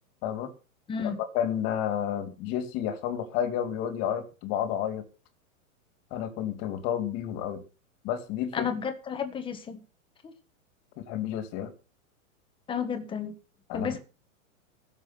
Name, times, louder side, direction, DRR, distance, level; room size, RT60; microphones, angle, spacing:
voice 1, 0.2-0.5 1.0-5.1 6.1-7.6 8.0-8.7 11.1-11.7 13.7-14.0, left 9 dB, 30° left, 2.6 m, -31 dB
voice 2, 0.9-1.2 8.5-9.8 10.2-10.3 12.7-13.4 13.7-14.0, left 6 dB, 10° left, 1.4 m, -32 dB
16.0 x 7.3 x 6.0 m
supercardioid pair, 160°, 42 cm